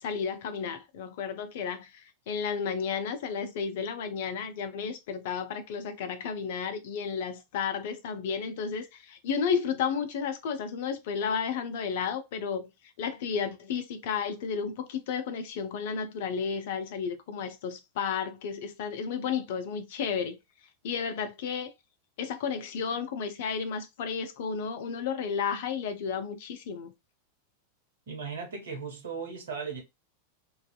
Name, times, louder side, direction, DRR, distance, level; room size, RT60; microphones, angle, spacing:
voice 1, 0.0-12.7 13.0-20.4 20.8-21.7 22.2-26.9, left 6 dB, 55° left, 0.5 m, -32 dB
voice 2, 28.1-29.8, right 5 dB, 65° right, 1.0 m, -37 dB
2.6 x 2.3 x 2.2 m
figure-of-eight pair, 90°, 0 cm